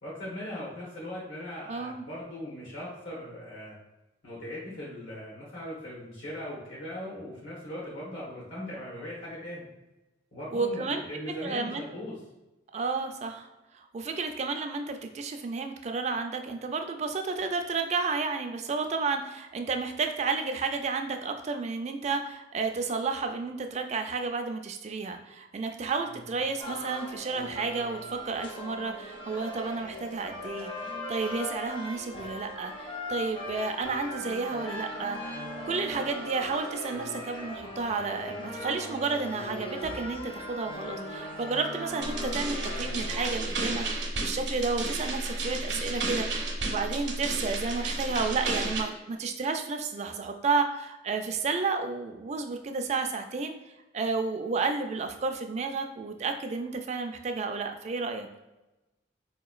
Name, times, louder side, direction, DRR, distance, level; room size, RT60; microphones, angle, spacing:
voice 1, 0.0-3.8 4.2-9.6 10.3-12.2 26.1-26.2, left 1 dB, 80° left, -5 dB, 1.1 m, -39 dB
voice 2, 1.7-2.0 10.5-11.0 11.4-11.8 12.7-13.5 13.7-28.0 28.2-30.7 31.1-35.2 35.7-53.5 53.9-58.3, right 4 dB, 35° right, 5 dB, 0.3 m, -31 dB
sound 1, 26.6-43.3, left 1 dB, 25° left, 0.5 m, -39 dB
sound 2, 42.0-48.8, right 2 dB, 65° right, 0.7 m, -32 dB
4.3 x 2.9 x 2.3 m, 1.0 s
head